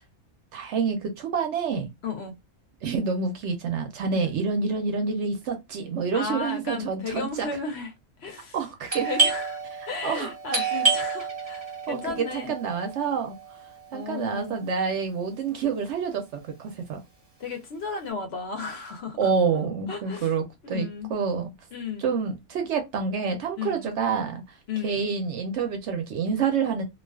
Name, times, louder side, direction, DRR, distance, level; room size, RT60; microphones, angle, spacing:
voice 1, 0.5-1.9 2.8-7.5 8.5-9.1 10.0-10.3 11.9-13.4 13.9-17.0 19.2-21.5 22.0-24.6 24.8-26.8, right 5 dB, 65° right, 0.8 m, -28 dB
voice 2, 2.0-2.4 4.1-4.4 6.1-7.9 8.2-8.6 9.0-12.5 13.9-14.6 17.4-20.3 20.6-21.1 21.7-22.2 23.6-23.9 24.7-25.1, left 4 dB, 65° left, 0.7 m, -34 dB
Doorbell, 8.9-14.3, right 4 dB, 30° right, 0.7 m, -29 dB
2.3 x 2.3 x 2.2 m
omnidirectional pair, 1.5 m